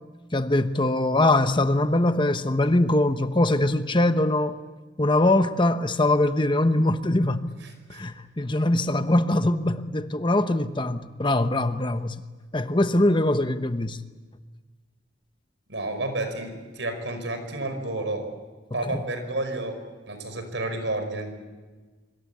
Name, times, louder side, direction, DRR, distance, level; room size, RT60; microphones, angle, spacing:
voice 1, 0.3-4.6 5.0-7.6 7.9-12.2 12.5-14.0 18.7-19.1, left 1 dB, 25° left, 1.0 m, -22 dB
voice 2, 15.7-18.2 18.7-19.8 20.1-21.3, right 2 dB, 75° right, 5.5 m, -30 dB
25.5 x 25.0 x 8.5 m
head